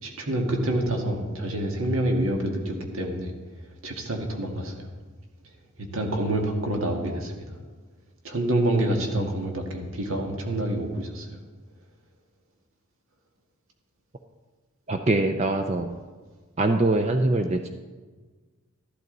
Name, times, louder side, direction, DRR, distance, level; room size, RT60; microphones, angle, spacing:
voice 1, 0.0-3.3 3.8-4.9 5.9-7.5 8.2-11.4, right 1 dB, 75° right, 2 dB, 2.0 m, -27 dB
voice 2, 14.9-15.9 16.6-17.7, right 2 dB, 30° right, 6 dB, 0.5 m, -23 dB
13.0 x 12.0 x 4.0 m, 1.4 s
head